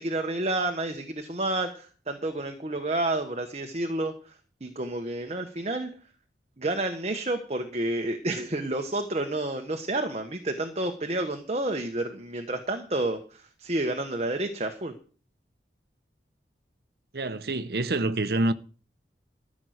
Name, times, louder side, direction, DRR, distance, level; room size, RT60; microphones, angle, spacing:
voice 1, 0.0-5.9 6.6-14.9, right 2 dB, 35° right, 1.1 m, -30 dB
voice 2, 17.1-18.5, right 2 dB, 60° right, 0.8 m, -26 dB
13.5 x 6.2 x 7.9 m
head